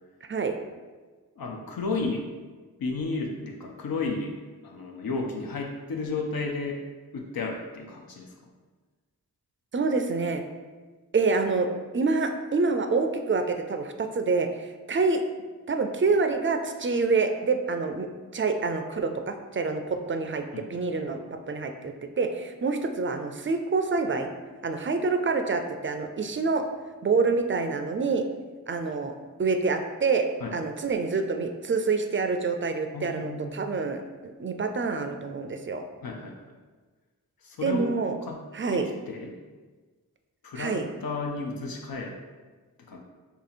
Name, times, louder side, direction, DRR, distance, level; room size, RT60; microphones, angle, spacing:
voice 1, 1.4-2.3 2.8-4.4 4.6-6.8 7.1-8.3 20.5-21.0 30.4-30.5 32.9-33.5 36.0-36.5 37.4-37.9 38.3-38.4 38.7-39.3 40.4-42.2 42.8-43.0, left 3 dB, 75° left, 1 dB, 0.6 m, -33 dB
voice 2, 9.7-10.4 11.1-11.7 11.9-15.2 15.7-18.1 18.3-20.4 20.7-24.3 24.6-26.6 27.0-28.2 28.7-29.1 29.4-30.3 30.5-35.8 37.6-38.2 38.5-38.9 40.6-40.9, right 4 dB, 35° right, 6 dB, 0.4 m, -27 dB
2.8 x 2.7 x 4.1 m, 1.4 s
cardioid pair, 40°, 36 cm